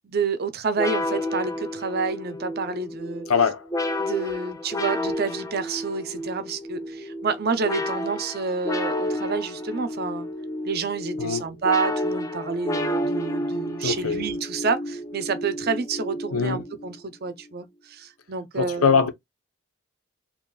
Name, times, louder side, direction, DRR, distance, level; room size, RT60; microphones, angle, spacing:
voice 1, 0.0-3.3 4.0-10.3 10.6-19.0, right 4 dB, 45° right, 0.5 m, -29 dB
sound 1, 0.8-17.0, left 1 dB, 15° left, 0.4 m, -31 dB
voice 2, 3.3-3.7 11.2-11.4 13.8-14.2 16.3-16.6 18.6-19.1, left 6 dB, 85° left, 0.7 m, -22 dB
3.8 x 2.9 x 2.3 m
head